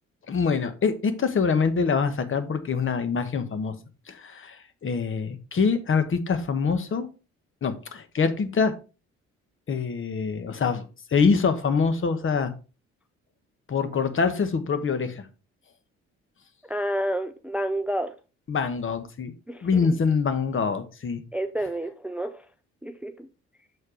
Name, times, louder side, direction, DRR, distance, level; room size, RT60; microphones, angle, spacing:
voice 1, 0.3-3.7 4.1-7.1 7.6-8.7 9.7-12.5 13.7-15.3 18.5-19.3 19.6-21.2, left 5 dB, 45° left, 1.1 m, -25 dB
voice 2, 16.7-18.1 19.5-19.8 21.3-22.4 22.8-23.3, right 1 dB, 5° right, 0.4 m, -29 dB
6.7 x 4.3 x 4.9 m
cardioid pair, 90°, 30 cm